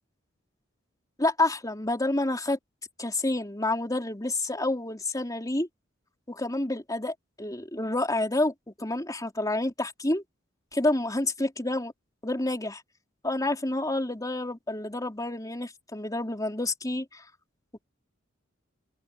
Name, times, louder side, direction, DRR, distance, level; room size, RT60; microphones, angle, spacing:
voice 1, 1.2-2.6 3.0-5.7 6.3-8.5 8.8-10.2 10.7-11.9 12.2-12.8 13.2-17.2, left 2 dB, 20° left, 3.5 m, -28 dB
open air
head